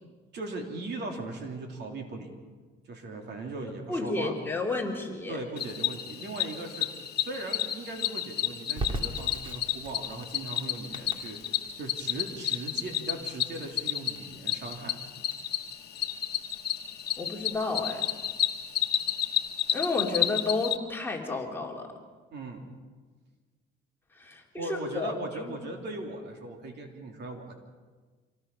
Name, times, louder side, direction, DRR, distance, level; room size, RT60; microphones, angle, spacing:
voice 1, 0.3-2.3 2.9-4.3 5.3-6.9 7.1-11.4 11.8-15.0 22.3-22.6 24.6-27.5, right 2 dB, 60° right, 2 dB, 3.3 m, -38 dB
voice 2, 3.6-5.4 17.2-18.2 19.7-21.9 24.1-25.5, left 3 dB, 10° left, -1 dB, 2.8 m, -32 dB
Cricket, 5.6-20.8, left 11 dB, 55° left, 1.3 m, -31 dB
Crackle, 8.8-19.5, right 2 dB, 25° right, 2.3 m, -42 dB
26.0 x 18.5 x 5.6 m, 1.4 s
cardioid pair, 130°, 20 cm